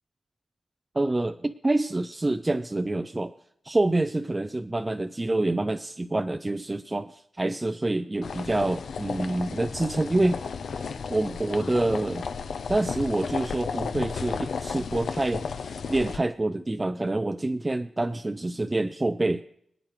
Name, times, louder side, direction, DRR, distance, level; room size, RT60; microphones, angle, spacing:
voice 1, 1.0-3.3 3.6-10.5 11.1-12.3 12.7-19.4, right 2 dB, 20° right, 8 dB, 0.4 m, -27 dB
sound 1, 8.2-16.2, left 5 dB, 75° left, 0.6 m, -33 dB
26.0 x 8.9 x 3.1 m, 0.73 s
wide cardioid pair, 125°, 0 cm